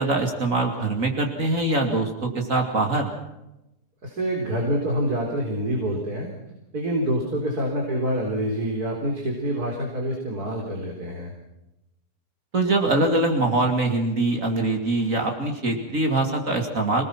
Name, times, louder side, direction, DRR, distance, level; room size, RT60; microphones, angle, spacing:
voice 1, 0.0-3.1 12.5-17.0, right 2 dB, 55° right, 4 dB, 3.1 m, -23 dB
voice 2, 4.0-6.3 6.7-11.3, right 1 dB, 70° right, 0 dB, 4.4 m, -26 dB
27.0 x 19.5 x 6.0 m, 0.91 s
omnidirectional pair, 1.7 m